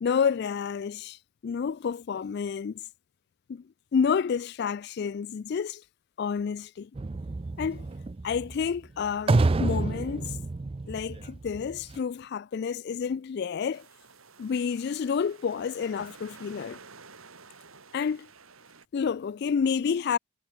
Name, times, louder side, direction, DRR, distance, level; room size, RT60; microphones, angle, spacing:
voice 1, 0.0-2.8 3.5-3.6 3.9-5.8 6.2-6.9 7.6-7.9 8.2-10.4 10.9-13.9 14.4-16.8 17.9-18.3 18.9-20.2, left 6 dB, 50° left, 0.3 m, -29 dB
sound 1, 7.0-12.0, right 3 dB, 25° right, 0.4 m, -29 dB
sound 2, 13.7-18.9, right 4 dB, 75° right, 3.7 m, -51 dB
head